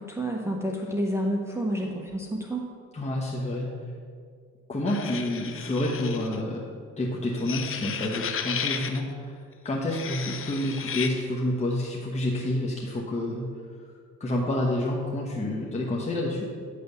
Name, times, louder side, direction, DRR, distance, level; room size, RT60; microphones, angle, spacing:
voice 1, 0.0-2.6, equal, 10° right, -1 dB, 0.7 m, -29 dB
voice 2, 2.9-3.7 4.7-6.6 7.0-13.5 14.2-16.4, left 1 dB, 20° left, -3 dB, 1.0 m, -29 dB
sound 1, 4.9-6.4 7.4-9.0 9.8-11.1, left 7 dB, 45° left, 0.6 m, -34 dB
9.5 x 3.4 x 6.7 m, 2.2 s
cardioid pair, 90°, 30 cm